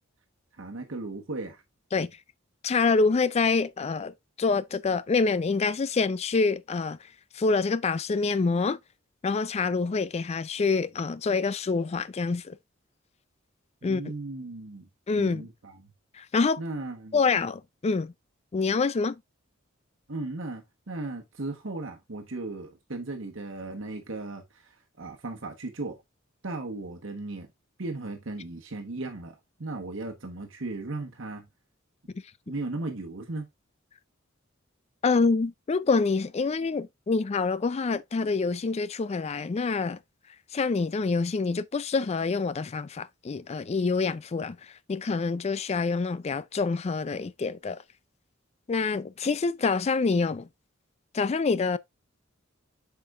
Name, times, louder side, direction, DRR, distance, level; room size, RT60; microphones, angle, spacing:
voice 1, 0.6-1.6 13.8-14.9 15.2-15.9 16.6-17.2 20.1-26.0 26.4-27.5 27.8-29.3 29.6-31.5 32.5-33.4, right 2 dB, 65° right, 1.2 m, -36 dB
voice 2, 2.6-7.0 7.3-8.8 9.2-12.5 13.8-14.0 15.1-15.5 16.1-16.6 17.1-18.1 18.5-19.2 35.0-40.0 40.5-44.6 44.9-47.8 48.7-50.5 51.1-51.8, left 4 dB, 30° left, 0.4 m, -26 dB
8.4 x 5.9 x 2.4 m
head